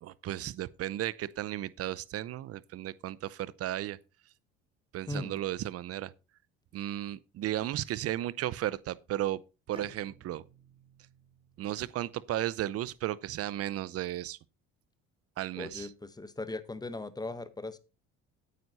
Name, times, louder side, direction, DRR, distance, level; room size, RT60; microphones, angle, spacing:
voice 1, 0.0-4.0 4.9-6.1 6.7-9.4 9.7-10.4 11.6-14.4 15.4-15.9, right 13 dB, 55° right, 0.7 m, -34 dB
voice 2, 5.1-5.4 15.5-17.8, left 2 dB, 15° left, 1.0 m, -38 dB
Bowed string instrument, 9.7-13.4, right 3 dB, 20° right, 4.7 m, -56 dB
9.4 x 9.3 x 4.1 m
cardioid pair, 100°, 29 cm